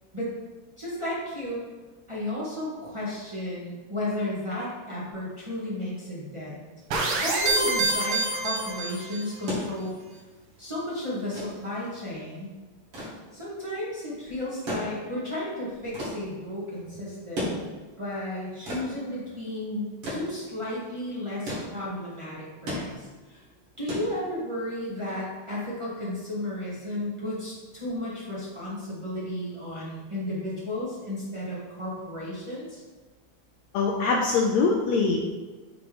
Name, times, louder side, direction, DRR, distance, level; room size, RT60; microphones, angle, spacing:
voice 1, 0.8-1.6 2.1-6.6 7.2-9.9 10.6-12.5 13.3-17.7 18.0-23.4 23.8-32.8, left 1 dB, 25° right, -8 dB, 0.6 m, -33 dB
sound 1, 6.9-9.3, right 2 dB, 70° right, 1.4 m, -26 dB
sound 2, 9.5-24.7 26.0-26.1, equal, 45° right, 3.0 m, -37 dB
voice 2, 33.7-35.2, left 4 dB, 80° left, 0 dB, 1.6 m, -23 dB
7.1 x 3.7 x 5.0 m, 1.3 s
omnidirectional pair, 3.7 m